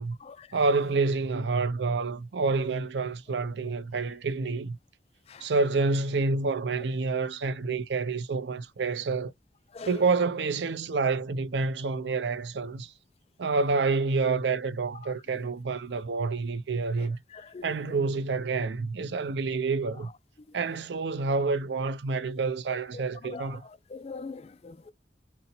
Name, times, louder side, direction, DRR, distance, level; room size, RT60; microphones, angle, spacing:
voice 1, 0.5-4.8 5.4-9.3 9.9-12.9 13.4-17.2 17.6-20.1 20.5-23.6, right 4 dB, 80° right, 0.5 m, -28 dB
voice 2, 17.3-18.0 22.9-23.5 23.9-24.9, left 4 dB, 35° left, 0.3 m, -42 dB
4.0 x 2.1 x 4.2 m
head